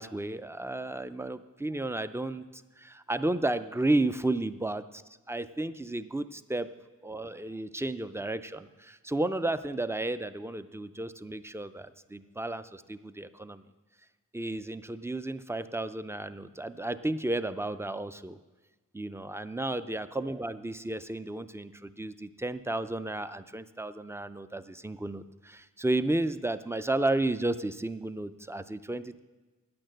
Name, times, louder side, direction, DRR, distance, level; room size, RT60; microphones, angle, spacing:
voice 1, 0.0-6.7 7.0-13.6 14.3-18.4 18.9-29.2, right 2 dB, 10° right, 12 dB, 0.5 m, -33 dB
10.5 x 8.8 x 7.7 m, 1.2 s
wide cardioid pair, 65°, 33 cm